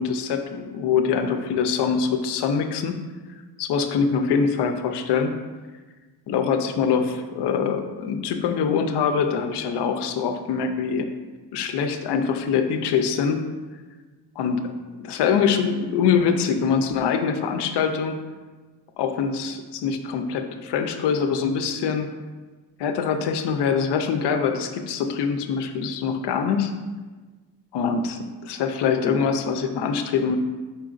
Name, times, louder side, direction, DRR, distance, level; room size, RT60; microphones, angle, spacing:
voice 1, 0.0-3.0 3.6-5.3 6.3-11.1 11.5-13.4 14.4-14.7 15.0-18.2 19.0-22.1 22.8-26.7 27.7-30.4, left 6 dB, 70° left, 6 dB, 0.5 m, -24 dB
4.4 x 3.9 x 2.5 m, 1.3 s
cardioid pair, 80°, 43 cm